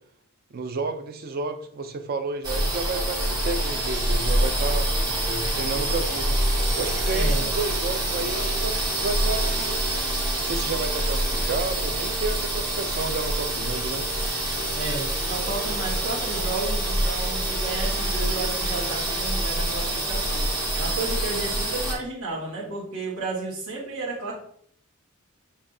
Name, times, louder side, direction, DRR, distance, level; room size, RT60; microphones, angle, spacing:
voice 1, 0.5-4.9 5.3-6.4 6.8-9.8 10.4-14.1, right 3 dB, 45° right, 7 dB, 0.4 m, -31 dB
sound 1, 2.4-21.9, right 1 dB, 20° right, 1.7 m, -26 dB
voice 2, 7.1-7.5 14.7-20.5 20.7-24.3, right 3 dB, 65° right, -6 dB, 1.6 m, -32 dB
7.1 x 2.6 x 2.7 m, 0.64 s
head